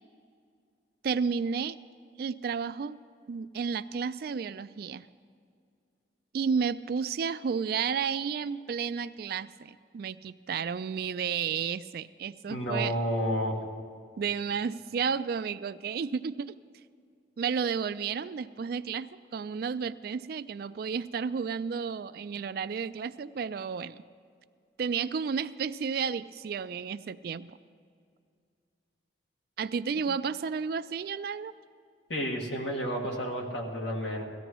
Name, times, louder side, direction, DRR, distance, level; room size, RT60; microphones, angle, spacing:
voice 1, 1.0-1.8 2.2-3.0 3.3-5.1 6.3-12.9 14.2-16.5 17.4-24.0 24.8-27.6 29.6-31.5, right 6 dB, 55° right, 14 dB, 0.3 m, -32 dB
voice 2, 12.5-13.5 29.9-30.1 32.1-34.2, equal, 75° left, 0 dB, 1.9 m, -31 dB
17.5 x 14.5 x 3.0 m, 2.3 s
head